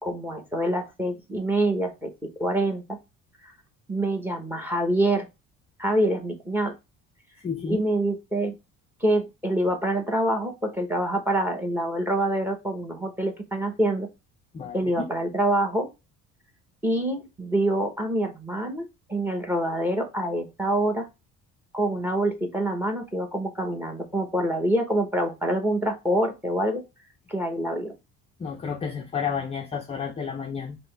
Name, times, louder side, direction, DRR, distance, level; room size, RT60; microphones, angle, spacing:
voice 1, 0.0-2.1 2.4-2.8 3.4-3.5 3.9-5.3 5.8-6.7 7.7-8.5 9.0-14.1 14.7-15.9 16.8-21.1 21.7-26.8 27.3-27.9, right 1 dB, 5° right, 0.9 m, -26 dB
voice 2, 7.4-7.8 14.5-15.1 28.4-30.8, left 6 dB, 20° left, 0.4 m, -31 dB
5.3 x 2.1 x 3.2 m
cardioid pair, 145°, 30 cm